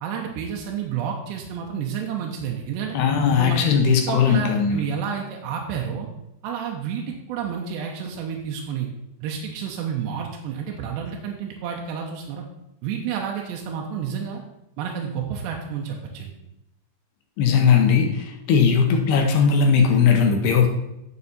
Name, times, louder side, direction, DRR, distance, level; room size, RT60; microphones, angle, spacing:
voice 1, 0.0-3.0 3.4-3.7 4.1-6.1 6.4-8.9 9.2-12.4 12.8-14.4 14.8-16.3, right 7 dB, 85° right, 0 dB, 3.0 m, -30 dB
voice 2, 2.9-4.8 17.4-20.7, left 6 dB, 80° left, 3 dB, 2.8 m, -18 dB
9.6 x 7.0 x 4.2 m, 0.87 s
omnidirectional pair, 4.9 m